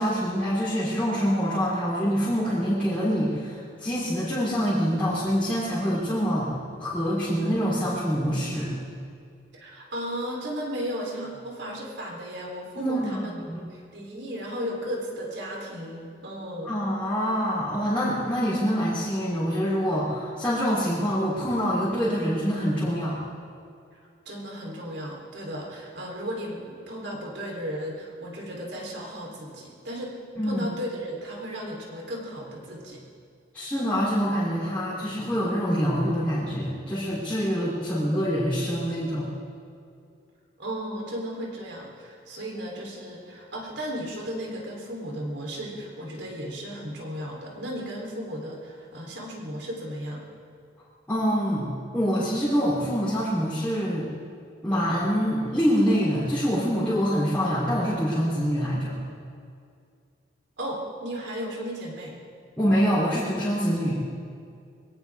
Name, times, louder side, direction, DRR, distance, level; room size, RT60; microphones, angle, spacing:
voice 1, 0.0-6.5 6.8-8.7 12.8-13.6 16.6-23.2 30.4-30.7 33.5-39.3 51.1-54.1 54.6-58.9 62.6-64.0, equal, 10° left, -12 dB, 3.4 m, -25 dB
voice 2, 9.5-16.8 23.9-24.0 24.3-33.0 40.6-50.3 60.6-62.2, equal, 70° right, -2 dB, 3.6 m, -35 dB
22.5 x 17.5 x 3.6 m, 2.3 s
head